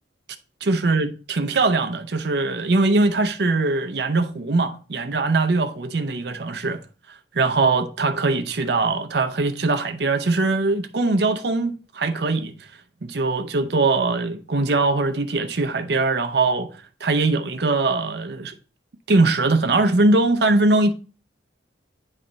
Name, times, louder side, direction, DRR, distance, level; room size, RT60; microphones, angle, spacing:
voice 1, 0.6-6.8 7.3-12.5 13.0-16.7 17.0-18.5 19.1-20.9, right 3 dB, 60° right, 0.6 m, -21 dB
9.7 x 3.3 x 3.9 m
head